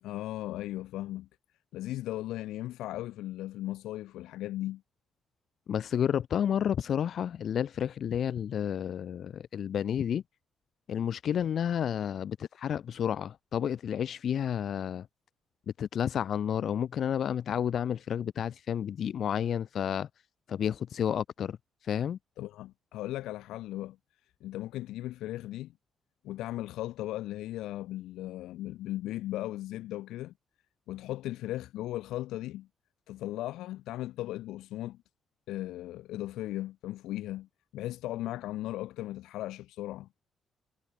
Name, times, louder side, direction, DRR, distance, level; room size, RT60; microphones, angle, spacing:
voice 1, 0.0-1.3 1.7-4.8 22.4-24.0 24.4-25.7 26.2-30.3 30.9-32.7 33.1-35.0 35.5-37.5 37.7-40.2, left 15 dB, 90° left, 2.5 m, -37 dB
voice 2, 5.7-10.2 10.9-15.1 15.8-20.1 20.5-21.6 21.8-22.2, left 9 dB, 60° left, 0.9 m, -31 dB
cardioid pair, 90°, 0 cm